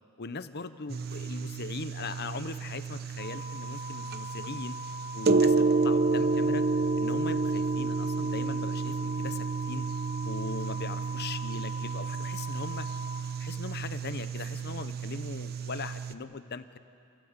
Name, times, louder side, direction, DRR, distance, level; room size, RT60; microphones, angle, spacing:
voice 1, 0.2-4.8 5.1-6.6 7.0-9.9 10.2-12.9 13.4-16.8, left 4 dB, 50° left, 12 dB, 0.8 m, -40 dB
sound 1, 0.9-16.1, right 4 dB, 50° right, 0.7 m, -30 dB
sound 2, 3.2-13.2, left 1 dB, 20° right, 3.8 m, -41 dB
28.5 x 16.0 x 8.1 m, 2.6 s
head